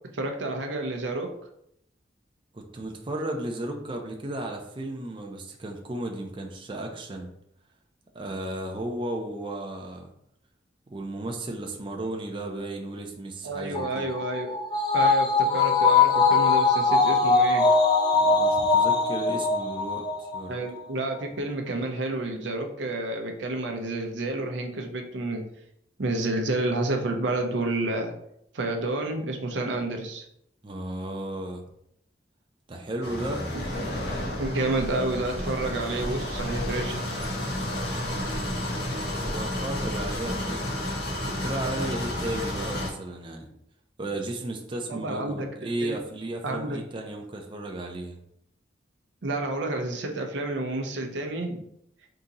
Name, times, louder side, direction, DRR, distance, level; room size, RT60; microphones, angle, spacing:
voice 1, 0.1-1.3 13.4-14.5 14.9-17.7 20.5-25.4 26.0-28.1 28.5-30.2 33.5-33.6 34.4-37.0 44.9-46.0 46.4-46.8 49.2-51.6, right 2 dB, 90° right, 3 dB, 0.7 m, -30 dB
voice 2, 2.5-7.3 8.1-10.1 10.9-14.1 18.1-20.5 30.6-31.6 32.7-33.5 38.1-38.8 39.2-40.6 41.2-43.5 44.0-48.2, right 1 dB, 30° right, 2 dB, 0.5 m, -34 dB
sound 1, 13.7-20.4 20.8-20.9, left 4 dB, 25° left, 0.5 m, -21 dB
sound 2, 33.0-42.9, left 1 dB, 65° left, 1.3 m, -31 dB
3.7 x 2.8 x 3.9 m, 0.75 s
head